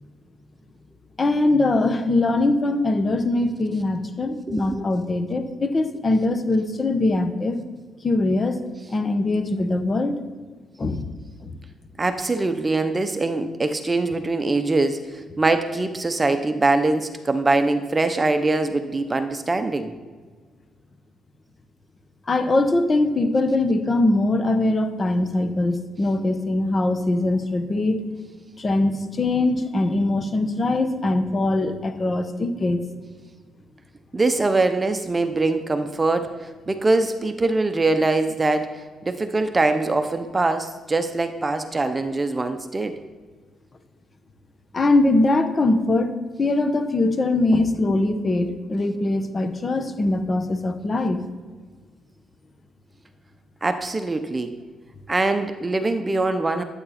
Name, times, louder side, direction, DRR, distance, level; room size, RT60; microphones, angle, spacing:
voice 1, 1.2-7.6 8.0-8.6 8.9-10.2 10.8-11.1 11.4-11.6 22.3-28.0 28.6-32.8 44.7-51.2, left 2 dB, 30° left, 9 dB, 1.1 m, -22 dB
voice 2, 4.5-4.8 12.0-19.9 34.1-43.0 53.6-54.5 55.1-56.6, right 2 dB, 25° right, 9 dB, 0.8 m, -23 dB
11.5 x 8.8 x 4.3 m, 1.5 s
cardioid pair, 90°, 0 cm